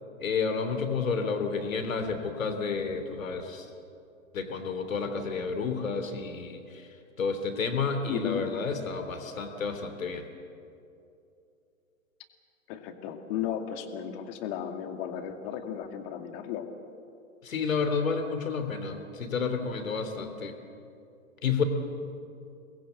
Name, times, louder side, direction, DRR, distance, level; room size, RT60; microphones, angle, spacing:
voice 1, 0.2-3.7 4.3-6.9 7.2-10.3 17.4-20.5 21.4-21.6, left 5 dB, 70° left, 7 dB, 3.2 m, -30 dB
voice 2, 8.1-8.5 12.7-16.7, left 9 dB, 40° left, 6 dB, 2.4 m, -34 dB
24.0 x 20.5 x 8.3 m, 2.7 s
figure-of-eight pair, 115°, 41 cm